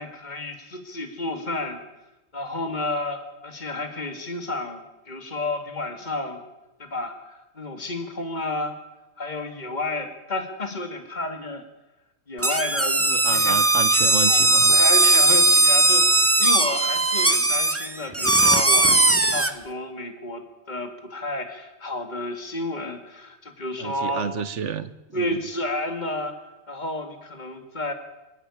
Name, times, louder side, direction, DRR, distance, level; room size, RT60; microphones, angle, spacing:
voice 1, 0.0-1.8 2.3-6.4 6.8-8.8 9.2-11.6 12.3-13.6 14.2-24.3 25.1-26.3 26.7-27.9, left 2 dB, 40° left, 7 dB, 2.4 m, -31 dB
sound 1, 12.4-19.5, right 2 dB, 15° right, 0.8 m, -18 dB
voice 2, 13.1-14.8 23.8-25.4, right 7 dB, 85° right, 14 dB, 1.3 m, -31 dB
25.5 x 11.5 x 9.9 m, 1.0 s
omnidirectional pair, 1.2 m